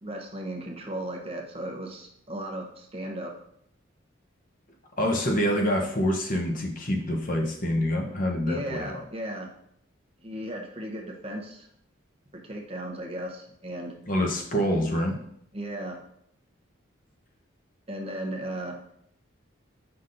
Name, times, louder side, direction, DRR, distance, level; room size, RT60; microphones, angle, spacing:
voice 1, 0.0-3.3 8.5-9.5 10.2-11.7 12.3-13.9 15.5-16.0 17.9-18.8, right 1 dB, 30° right, 1 dB, 0.9 m, -36 dB
voice 2, 5.0-9.0 14.1-15.2, equal, 40° left, 1 dB, 0.9 m, -26 dB
8.1 x 5.8 x 2.6 m, 0.70 s
head